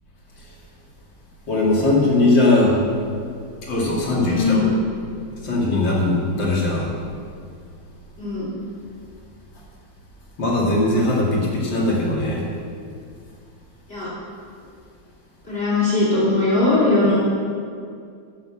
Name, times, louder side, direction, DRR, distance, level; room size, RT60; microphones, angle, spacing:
voice 1, 1.5-2.8 3.6-4.6 5.4-6.9 10.4-12.4, left 2 dB, 70° left, -4 dB, 3.1 m, -19 dB
voice 2, 4.2-4.7 8.2-8.5 13.9-14.1 15.4-17.2, left 2 dB, 30° left, -7 dB, 3.1 m, -19 dB
11.5 x 8.0 x 7.1 m, 2.3 s
omnidirectional pair, 2.1 m